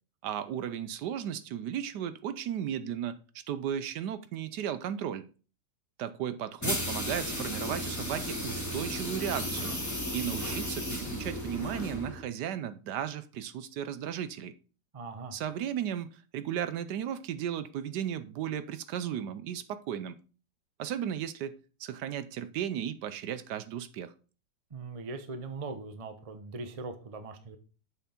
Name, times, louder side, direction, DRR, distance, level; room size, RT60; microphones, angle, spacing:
voice 1, 0.2-3.2 3.5-5.3 6.0-9.7 10.1-14.5 15.3-20.2 20.8-24.1, right 9 dB, 70° right, 1.1 m, -35 dB
sound 1, 6.6-12.2, equal, 10° left, 2.0 m, -34 dB
voice 2, 14.9-15.4 24.7-27.6, right 3 dB, 35° right, 0.5 m, -40 dB
7.1 x 5.8 x 4.3 m
omnidirectional pair, 2.0 m